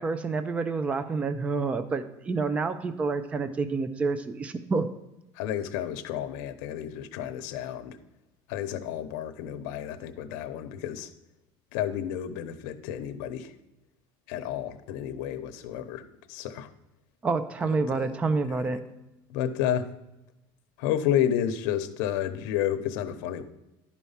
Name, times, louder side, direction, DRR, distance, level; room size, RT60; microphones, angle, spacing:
voice 1, 0.0-4.9 17.2-18.8, right 4 dB, 15° right, 11 dB, 0.4 m, -28 dB
voice 2, 5.4-8.0 8.5-11.1 11.7-13.5 14.3-16.7 17.9-18.1 19.3-19.9 20.8-23.4, left 10 dB, 75° left, 9 dB, 0.8 m, -31 dB
11.0 x 4.5 x 5.6 m, 0.96 s
cardioid pair, 175°, 10 cm